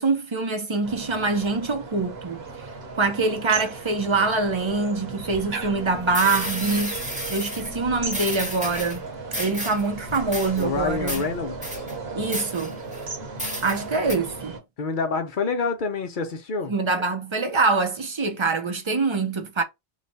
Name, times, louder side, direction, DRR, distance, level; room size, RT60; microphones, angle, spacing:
voice 1, 0.0-2.7 3.0-7.0 7.3-9.0 9.4-11.3 12.2-12.8 13.6-14.6 16.7-19.6, right 3 dB, 35° right, 0.6 m, -24 dB
sound 1, 0.8-14.6, right 3 dB, 75° right, 1.3 m, -36 dB
sound 2, 5.8-5.9 6.1-7.7 8.1-9.0 9.3-9.9 10.1-10.6 11.1-11.2 11.6-11.9 12.3-13.0 13.4-13.8 14.1-14.2, equal, 5° right, 1.1 m, -32 dB
voice 2, 10.6-11.8 14.8-16.7, left 4 dB, 55° left, 0.8 m, -27 dB
3.1 x 2.2 x 4.0 m
omnidirectional pair, 1.0 m